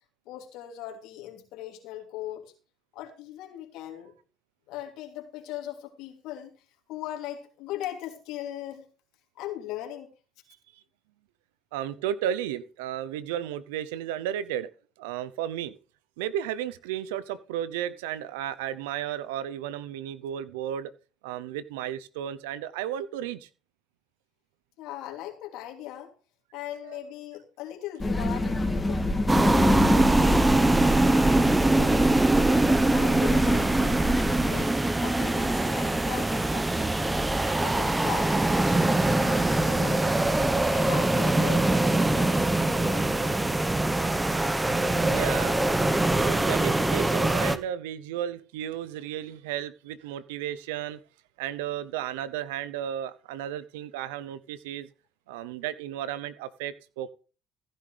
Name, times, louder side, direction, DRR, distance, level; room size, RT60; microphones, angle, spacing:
voice 1, 0.3-2.5 2.9-4.1 4.7-6.6 6.9-8.8 9.4-10.1 24.8-26.1 26.5-29.0 29.5-32.1 32.6-34.0 34.4-34.7 35.0-37.2 37.6-40.0 40.6-43.1, left 12 dB, 75° left, 2 dB, 2.9 m, -39 dB
voice 2, 11.7-14.7 15.0-15.7 16.2-20.9 21.2-23.5 26.8-27.0 44.6-45.6 46.1-51.0 51.4-54.9 55.3-57.1, right 10 dB, 90° right, 15 dB, 0.7 m, -33 dB
sound 1, 28.0-34.6, left 1 dB, 20° left, 2.2 m, -27 dB
sound 2, 29.3-47.6, right 2 dB, 15° right, 1.0 m, -23 dB
15.5 x 10.0 x 3.4 m, 0.37 s
supercardioid pair, 65°, 0 cm